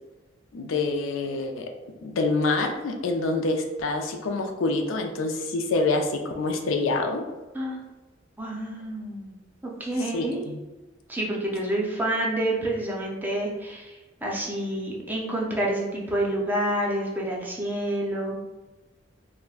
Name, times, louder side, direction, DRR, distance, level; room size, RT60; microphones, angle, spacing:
voice 1, 0.5-1.7 2.0-7.2 10.1-10.6, left 3 dB, 80° left, 3 dB, 0.4 m, -26 dB
voice 2, 8.4-10.5 11.1-18.4, right 1 dB, 10° right, -3 dB, 0.5 m, -28 dB
3.6 x 2.1 x 2.4 m, 1.2 s
head